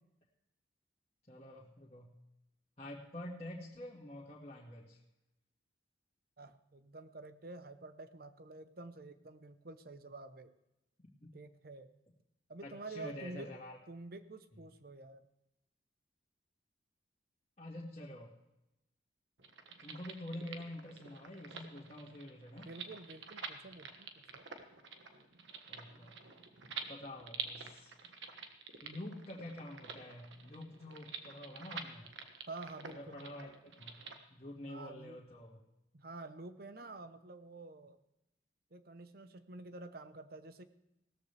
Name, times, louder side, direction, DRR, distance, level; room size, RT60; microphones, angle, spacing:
voice 1, 1.3-2.1 2.8-5.0 11.2-11.3 12.6-13.8 17.6-18.3 19.8-22.7 25.7-26.2 26.8-27.9 28.8-32.1 32.9-34.0 34.3-35.6, left 1 dB, 35° left, -6 dB, 1.8 m, -47 dB
voice 2, 6.4-10.5 11.3-11.9 12.5-13.5 13.9-15.2 22.6-24.5 32.5-33.3 34.7-35.2 35.9-38.0 38.7-40.6, right 3 dB, 50° right, 11 dB, 0.8 m, -49 dB
sound 1, 19.4-34.2, right 6 dB, 80° right, 1.4 m, -48 dB
17.0 x 13.5 x 3.4 m, 0.90 s
head